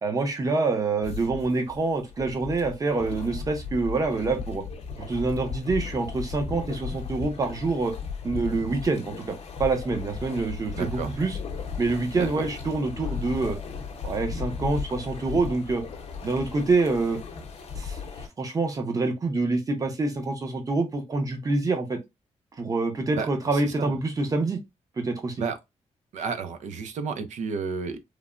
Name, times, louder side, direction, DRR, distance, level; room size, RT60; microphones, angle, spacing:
voice 1, 0.0-4.6 5.1-7.9 8.2-11.4 11.8-13.6 14.0-15.8 16.2-17.2 17.8-18.0 18.4-22.0 22.6-24.6 25.0-25.3, right 3 dB, 30° right, 0.7 m, -26 dB
sound 1, 1.0-18.3, left 5 dB, 60° left, 0.6 m, -36 dB
voice 2, 10.8-11.2 12.1-12.4 23.1-23.9 25.4-25.6 26.1-28.0, right 5 dB, 85° right, 0.5 m, -32 dB
3.2 x 2.0 x 2.4 m
wide cardioid pair, 145°, 12 cm